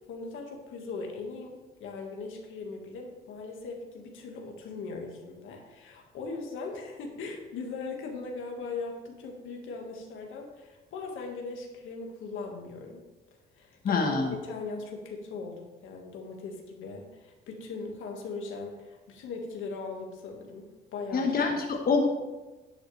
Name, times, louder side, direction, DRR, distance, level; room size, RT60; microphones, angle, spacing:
voice 1, 0.1-1.5 1.8-13.0 13.6-20.6 20.9-21.4 22.0-22.1, left 4 dB, 85° left, 1 dB, 1.7 m, -39 dB
voice 2, 13.8-14.3 21.1-22.1, left 4 dB, 50° left, 2 dB, 1.3 m, -25 dB
10.5 x 8.2 x 3.3 m, 1.1 s
cardioid pair, 90°, 20 cm